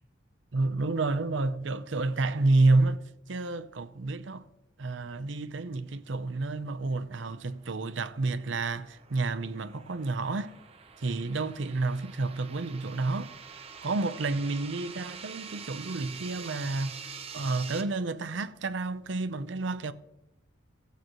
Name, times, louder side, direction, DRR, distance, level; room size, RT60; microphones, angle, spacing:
voice 1, 0.5-3.0 3.3-4.4 4.8-10.6 11.0-13.3 13.8-16.9 17.3-19.9, right 3 dB, 75° right, 0.6 m, -29 dB
sound 1, 7.4-17.8, right 6 dB, 30° right, 0.8 m, -46 dB
17.0 x 8.0 x 3.0 m
head